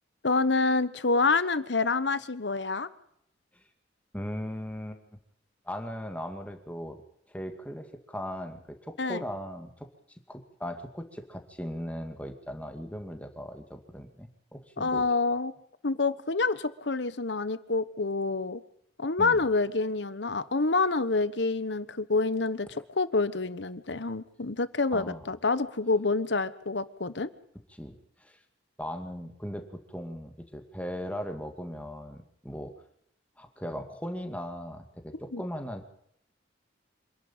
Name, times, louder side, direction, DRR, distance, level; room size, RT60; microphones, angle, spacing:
voice 1, 0.2-2.9 9.0-9.2 14.8-15.5 15.8-18.6 19.0-27.3 35.3-35.4, left 3 dB, 70° left, 15 dB, 1.1 m, -27 dB
voice 2, 4.1-5.2 5.6-7.0 7.3-9.9 10.3-15.0 19.2-19.4 22.7-22.8 24.9-25.2 27.7-28.4 28.8-32.7 33.4-35.9, equal, 10° left, 6 dB, 2.3 m, -38 dB
26.5 x 11.5 x 8.9 m, 0.71 s
head